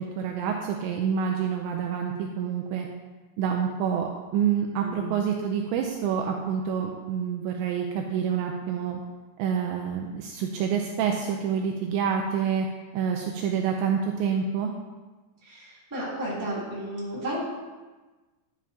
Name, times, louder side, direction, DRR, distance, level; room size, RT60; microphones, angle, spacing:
voice 1, 0.0-2.9 3.4-9.0 9.4-12.7 12.9-14.7, right 7 dB, 85° right, 2 dB, 2.6 m, -27 dB
voice 2, 4.8-5.2 15.4-17.4, right 1 dB, 5° right, -7 dB, 2.0 m, -33 dB
11.5 x 9.3 x 2.8 m, 1.2 s
omnidirectional pair, 5.7 m